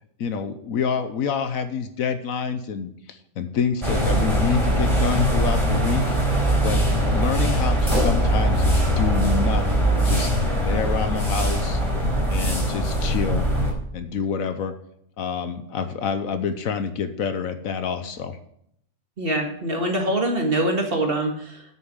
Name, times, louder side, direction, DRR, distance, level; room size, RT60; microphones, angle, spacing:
voice 1, 0.2-6.8 7.1-11.8 12.3-13.5 13.9-14.7 15.2-18.4, left 6 dB, 70° left, 10 dB, 1.2 m, -28 dB
sound 1, 3.8-13.7, equal, 20° right, 3.8 m, -21 dB
voice 2, 19.2-21.6, right 1 dB, 40° right, 2 dB, 1.9 m, -24 dB
8.9 x 6.9 x 6.4 m, 0.72 s
omnidirectional pair, 1.6 m